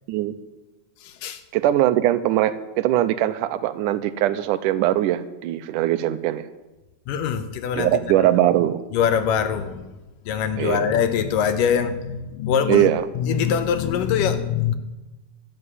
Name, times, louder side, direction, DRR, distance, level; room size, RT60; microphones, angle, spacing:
voice 1, 1.0-1.4 7.1-8.3 8.9-9.9 10.3-14.7, left 7 dB, 85° left, 10 dB, 2.5 m, -23 dB
voice 2, 1.5-6.4 7.8-8.8 10.6-10.8 12.7-13.0, right 13 dB, 80° right, 12 dB, 2.0 m, -21 dB
12.0 x 7.6 x 9.6 m, 1.1 s
omnidirectional pair, 3.8 m